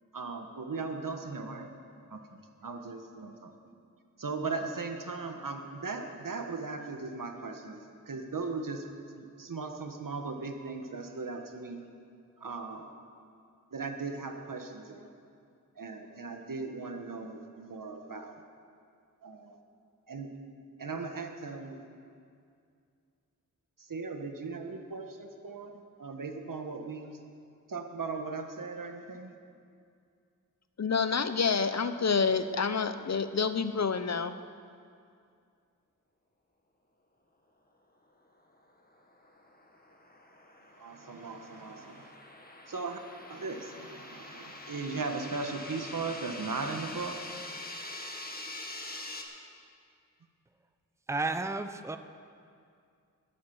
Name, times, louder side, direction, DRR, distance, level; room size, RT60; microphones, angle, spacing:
voice 1, 0.1-1.7 2.1-3.5 4.2-8.8 9.1-11.8 12.4-12.9 13.7-15.1 15.8-18.4 19.2-19.6 20.1-20.3 20.8-21.8 23.8-25.7 26.0-27.2 27.7-29.3 40.8-42.1 42.7-43.0 43.3-47.2, right 4 dB, 75° right, 5 dB, 1.5 m, -38 dB
voice 2, 30.8-34.3, left 5 dB, 55° left, 11 dB, 0.7 m, -28 dB
sound 1, 38.8-49.2, left 2 dB, 30° left, 1.7 m, -45 dB
voice 3, 51.1-52.0, right 3 dB, 10° right, 9 dB, 0.6 m, -32 dB
21.5 x 8.9 x 7.2 m, 2.4 s
wide cardioid pair, 95°, 33 cm